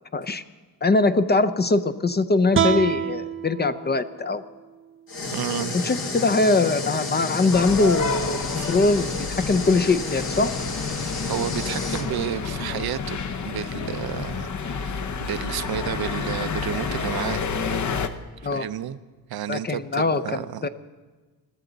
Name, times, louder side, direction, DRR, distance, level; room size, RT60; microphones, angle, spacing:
voice 1, 0.1-0.4 0.8-4.4 5.8-9.1 9.5-10.5 18.4-18.7 19.5-20.2 20.6-20.7, left 3 dB, 25° left, 10 dB, 0.6 m, -22 dB
sound 1, 2.5-5.7, right 7 dB, 30° right, 0.6 m, -28 dB
sound 2, 5.1-12.1, left 3 dB, 65° left, 1.9 m, -31 dB
voice 2, 5.3-5.8 8.6-8.7 11.3-13.2 13.4-14.9 15.2-17.5 18.4-19.0 19.3-20.6, right 10 dB, 70° right, 13 dB, 0.7 m, -31 dB
sound 3, 7.5-18.1, left 5 dB, 45° left, 0.9 m, -30 dB
21.5 x 14.0 x 4.0 m, 1.3 s
cardioid pair, 120°, 39 cm